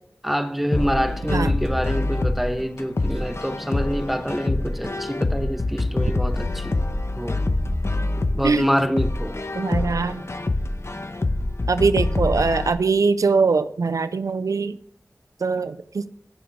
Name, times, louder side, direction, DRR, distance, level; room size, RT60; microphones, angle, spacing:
voice 1, 0.2-6.8 7.2-7.4 8.3-9.4, equal, 5° right, 8 dB, 1.3 m, -26 dB
sound 1, 0.7-12.7, left 2 dB, 50° left, 1.0 m, -25 dB
voice 2, 9.6-10.2 11.7-14.8 15.4-16.1, right 4 dB, 80° right, 14 dB, 0.5 m, -22 dB
18.0 x 6.9 x 3.6 m, 0.69 s
wide cardioid pair, 50°, 6 cm